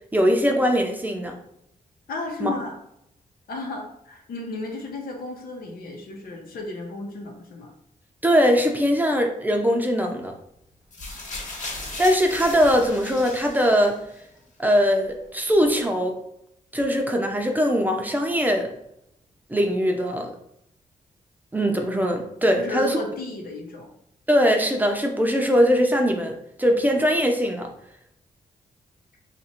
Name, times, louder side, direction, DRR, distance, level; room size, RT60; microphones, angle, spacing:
voice 1, 0.1-1.4 2.4-2.5 8.2-10.3 12.0-14.0 14.6-16.2 16.7-18.7 19.5-20.3 21.5-23.0 24.3-27.7, equal, 10° right, 3 dB, 0.5 m, -21 dB
voice 2, 2.1-2.8 3.5-7.7 22.6-23.9, left 2 dB, 90° left, 1 dB, 0.9 m, -33 dB
sound 1, 10.9-14.2 15.0-15.1, left 2 dB, 55° left, 1.2 m, -36 dB
2.9 x 2.5 x 4.3 m, 0.76 s
wide cardioid pair, 115°, 15 cm